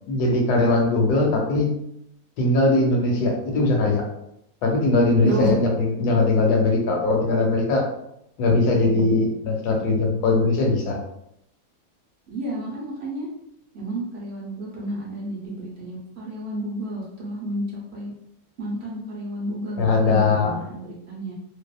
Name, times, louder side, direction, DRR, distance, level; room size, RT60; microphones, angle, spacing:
voice 1, 0.1-1.7 2.4-4.0 4.6-7.8 8.4-11.0 19.8-20.5, left 2 dB, 85° left, 1 dB, 1.2 m, -20 dB
voice 2, 5.2-5.6 8.4-9.2 12.3-13.3 13.7-18.1 18.6-21.3, right 1 dB, 60° right, -4 dB, 0.7 m, -31 dB
2.7 x 2.3 x 2.3 m, 0.78 s
omnidirectional pair, 1.7 m